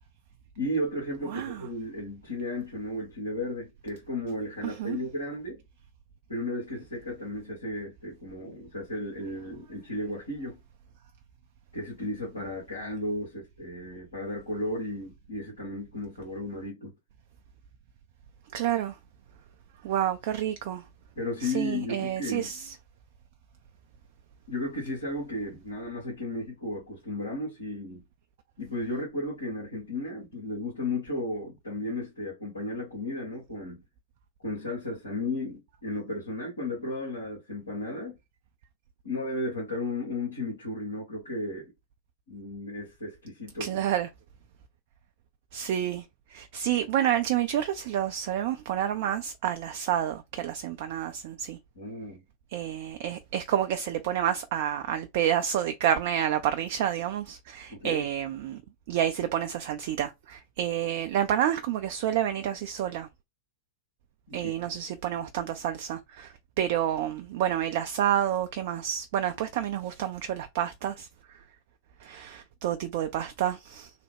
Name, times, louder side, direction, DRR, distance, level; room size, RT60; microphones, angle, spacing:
voice 1, 0.6-5.6 6.3-10.6 11.7-16.9 21.1-22.5 24.5-28.0 28.6-33.8 34.4-38.2 39.0-41.7 42.3-43.8 51.7-52.2 57.7-58.0 64.3-64.7, left 1 dB, 75° left, 1.4 m, -34 dB
voice 2, 1.3-1.7 4.6-5.0 18.5-19.0 19.8-20.8 21.4-22.8 43.6-44.1 45.5-51.6 52.5-58.6 58.9-63.1 64.3-71.4 72.0-73.9, right 10 dB, 50° right, 0.3 m, -29 dB
3.2 x 2.1 x 3.3 m
figure-of-eight pair, 90°, 0 cm